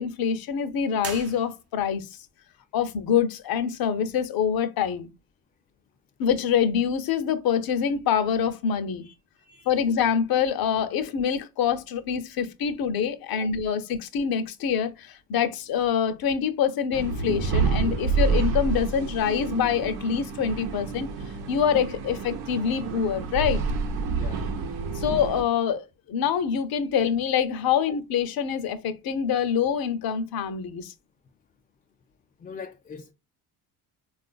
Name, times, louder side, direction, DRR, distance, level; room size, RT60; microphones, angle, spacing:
voice 1, 0.0-2.0 2.7-5.1 6.2-9.0 9.7-21.1 21.5-23.6 24.9-25.8 26.1-30.9, left 7 dB, 55° left, 0.7 m, -25 dB
sound 1, 1.0-2.0, right 6 dB, 35° right, 0.6 m, -39 dB
sound 2, 16.9-25.4, right 4 dB, 75° right, 0.8 m, -28 dB
voice 2, 24.2-24.5 27.9-28.0 32.4-33.1, left 6 dB, 20° left, 0.3 m, -42 dB
3.6 x 2.5 x 2.3 m
supercardioid pair, 80°, 44 cm